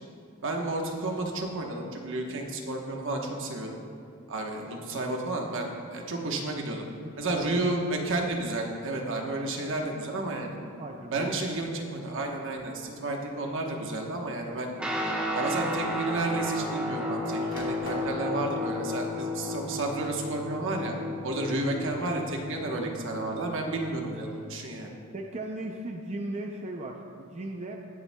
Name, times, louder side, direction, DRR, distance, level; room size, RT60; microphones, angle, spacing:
voice 1, 0.4-3.8 4.3-6.8 7.2-10.6 11.1-14.7 15.3-20.9 21.2-24.9, right 2 dB, 60° right, 1 dB, 1.1 m, -31 dB
voice 2, 7.0-7.6 10.8-11.3 25.1-27.8, right 2 dB, 30° right, 1 dB, 0.5 m, -37 dB
sound 1, 12.6-12.9 13.9-14.0 15.4-15.5 15.7-16.9 17.2-18.2, equal, 65° left, 2.4 m, -43 dB
Guitar, 14.8-24.4, left 1 dB, 5° right, 1.1 m, -33 dB
19.5 x 7.2 x 2.3 m, 2.4 s
head